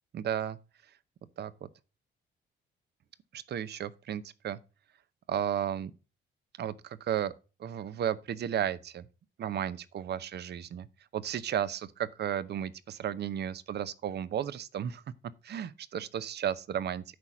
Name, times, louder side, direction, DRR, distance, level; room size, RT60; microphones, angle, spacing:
voice 1, 0.1-0.6 1.4-1.7 3.3-4.6 5.3-5.9 6.6-7.3 7.6-9.1 9.4-10.9 11.1-15.0 15.4-17.0, right 9 dB, 55° right, 0.7 m, -33 dB
10.5 x 4.3 x 6.0 m
cardioid pair, 90°, 20 cm